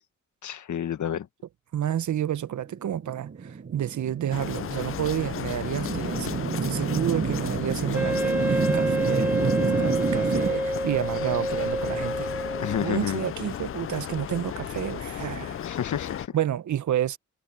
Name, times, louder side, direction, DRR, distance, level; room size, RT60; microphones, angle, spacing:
voice 1, 0.4-1.3 12.6-13.2 15.6-16.4, left 9 dB, 75° left, 1.4 m, -30 dB
voice 2, 1.7-12.5 12.8-15.6 16.3-17.2, right 10 dB, 70° right, 0.9 m, -30 dB
sound 1, 2.8-10.5, right 5 dB, 40° right, 1.0 m, -29 dB
sound 2, 4.3-16.3, left 10 dB, 45° left, 0.4 m, -35 dB
Wind instrument woodwind instrument, 7.9-13.0, right 1 dB, 5° right, 0.7 m, -28 dB
cardioid pair, 50°, 30 cm